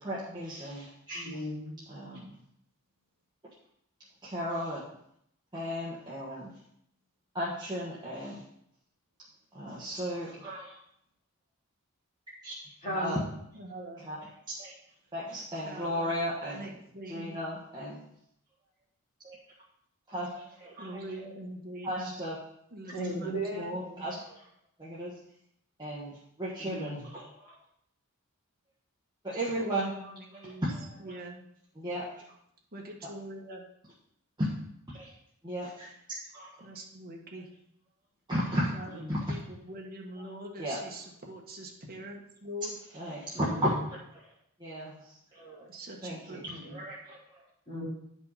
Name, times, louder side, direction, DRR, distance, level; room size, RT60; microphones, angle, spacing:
voice 1, 0.0-1.3 1.9-2.3 4.2-4.8 5.5-6.5 7.3-8.4 9.5-10.7 12.4-12.5 12.9-13.2 14.0-14.2 14.6-14.7 15.1-16.6 17.1-18.0 19.2-19.4 20.1-21.0 21.8-22.4 23.5-24.4 24.8-25.1 25.8-27.5 29.2-29.9 31.8-32.1 34.4-34.5 34.9-35.1 35.4-36.2 38.3-38.7 39.1-39.2 40.6-40.8 42.9-44.0 44.6-45.0 45.3-45.7 46.0-47.4, equal, 20° right, -7 dB, 1.4 m, -35 dB
voice 2, 1.1-1.9 12.8-13.2 22.9-23.7 26.6-27.0 38.9-39.2 43.3-43.7 47.7-47.8, equal, 35° left, -8 dB, 3.9 m, -36 dB
voice 3, 13.5-14.0 15.5-16.1 16.5-17.4 20.7-22.1 22.7-24.2 29.5-30.7 31.0-31.4 32.7-33.6 36.6-37.5 38.7-42.8 45.7-46.8, right 1 dB, 45° right, 0 dB, 1.4 m, -43 dB
10.5 x 5.3 x 4.2 m, 0.72 s
head